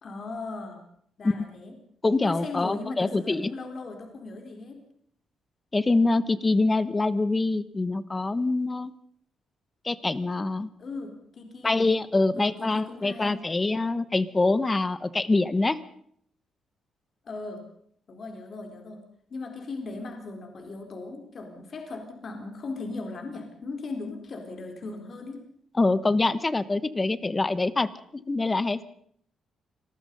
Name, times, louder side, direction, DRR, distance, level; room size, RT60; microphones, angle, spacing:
voice 1, 0.0-0.8 1.2-1.7 2.2-4.8 10.8-11.9 12.3-13.4 17.2-17.6 18.1-19.0 19.3-25.4, left 3 dB, 40° left, 4 dB, 4.1 m, -38 dB
voice 2, 2.0-3.5 5.7-8.9 9.8-10.7 11.6-15.8 25.8-27.9 28.1-28.8, left 3 dB, 15° left, 16 dB, 1.1 m, -25 dB
26.0 x 20.0 x 5.4 m, 0.65 s
cardioid pair, 150°, 0 cm